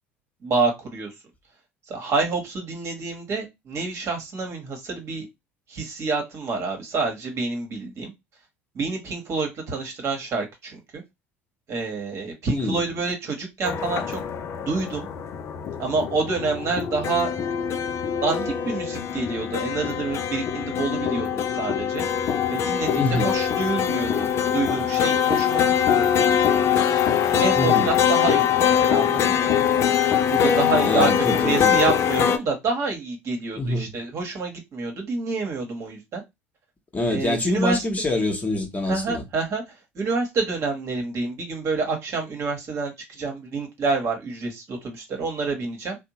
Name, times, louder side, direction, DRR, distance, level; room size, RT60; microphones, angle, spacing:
voice 1, 0.4-1.1 1.9-5.3 5.7-8.1 8.7-11.0 11.7-14.2 14.6-15.1 15.8-17.3 18.2-22.0 22.5-26.2 27.2-29.5 30.3-31.1 31.4-36.2 37.1-37.8 38.9-39.6 39.9-46.0, right 3 dB, 45° right, 1.1 m, -28 dB
voice 2, 12.5-12.8 22.9-23.4 27.5-27.9 30.8-31.8 33.5-33.9 36.9-39.2, left 1 dB, 20° left, 0.9 m, -25 dB
sound 1, 13.6-32.4, left 8 dB, 45° left, 0.4 m, -23 dB
2.7 x 2.0 x 2.8 m
hypercardioid pair, 70°, 7 cm